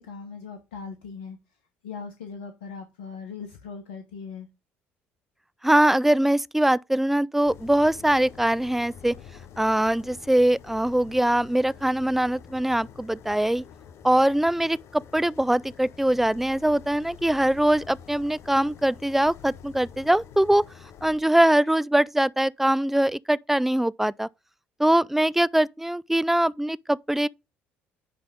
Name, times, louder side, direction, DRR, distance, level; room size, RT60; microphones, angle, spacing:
voice 1, 0.0-1.4 1.8-4.5, left 5 dB, 90° left, 1.1 m, -39 dB
voice 2, 5.6-9.2 9.6-13.6 14.0-20.6 21.0-24.3 24.8-27.3, right 1 dB, 5° right, 0.4 m, -22 dB
sound 1, 7.5-21.2, left 8 dB, 60° left, 1.0 m, -47 dB
9.9 x 3.4 x 5.2 m
hypercardioid pair, 60°, 5 cm